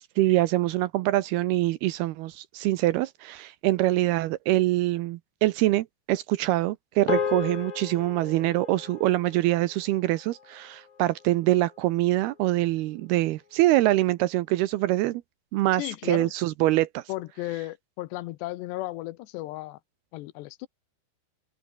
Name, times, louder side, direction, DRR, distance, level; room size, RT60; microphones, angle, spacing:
voice 1, 0.2-15.2 15.5-17.0, right 17 dB, 75° right, 2.4 m, -24 dB
sound 1, 7.1-11.6, left 7 dB, 55° left, 5.2 m, -35 dB
voice 2, 15.8-16.3 17.1-19.8 20.1-20.7, left 17 dB, 80° left, 2.9 m, -34 dB
open air
omnidirectional pair, 5.0 m